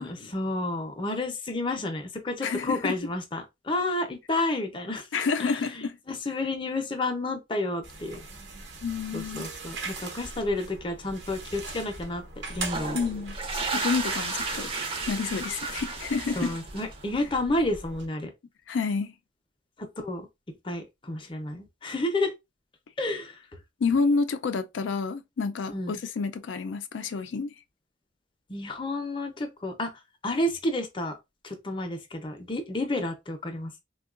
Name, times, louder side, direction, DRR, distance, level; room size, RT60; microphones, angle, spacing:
voice 1, 0.0-5.1 5.4-8.2 9.1-12.2 12.5-13.0 16.4-18.3 19.8-22.3 23.0-23.4 25.7-26.0 28.5-29.9 30.2-31.2 31.4-33.8, left 2 dB, 25° left, 0.6 m, -31 dB
voice 2, 2.4-2.9 5.1-5.9 8.8-9.5 12.9-13.4 13.7-14.7 15.1-16.5 18.7-19.1 23.8-27.5, left 4 dB, 85° left, 0.4 m, -29 dB
sound 1, 7.8-18.1, right 3 dB, 85° right, 1.0 m, -40 dB
sound 2, 12.7-17.2, right 3 dB, 30° right, 0.5 m, -33 dB
3.6 x 2.2 x 2.4 m
head